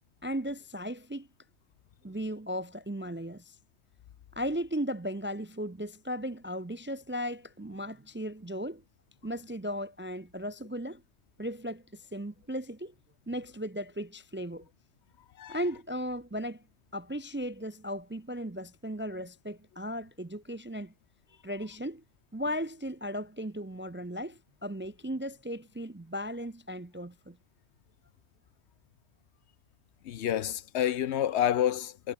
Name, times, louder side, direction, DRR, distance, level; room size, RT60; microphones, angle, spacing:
voice 1, 0.2-1.3 2.0-3.5 4.4-8.8 9.2-11.0 11.4-12.9 13.3-14.7 15.5-16.6 16.9-20.9 21.4-22.0 22.3-27.4, equal, 20° right, 0.3 m, -36 dB
voice 2, 30.0-32.1, left 10 dB, 85° left, 1.0 m, -28 dB
omnidirectional pair, 1.1 m